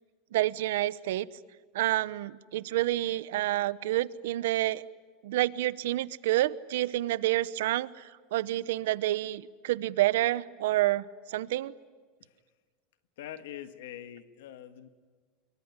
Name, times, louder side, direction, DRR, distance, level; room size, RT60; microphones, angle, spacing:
voice 1, 0.3-1.3 1.7-4.9 5.2-11.7, right 15 dB, 85° right, 19 dB, 0.9 m, -29 dB
voice 2, 13.2-14.9, left 11 dB, 85° left, 11 dB, 1.5 m, -43 dB
26.0 x 23.0 x 9.7 m, 1.5 s
supercardioid pair, 150°, 0 cm